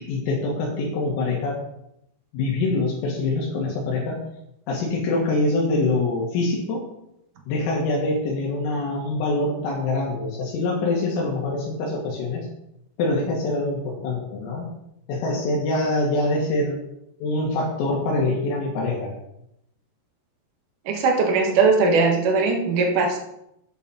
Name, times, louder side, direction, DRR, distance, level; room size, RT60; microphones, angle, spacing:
voice 1, 0.0-1.6 2.3-4.2 4.7-6.8 7.5-12.5 13.0-14.7 15.1-16.8 17.2-19.1, left 2 dB, 80° left, -4 dB, 4.4 m, -24 dB
voice 2, 20.9-23.2, right 4 dB, 65° right, 2 dB, 2.1 m, -19 dB
10.5 x 7.1 x 5.6 m, 0.80 s
omnidirectional pair, 6.0 m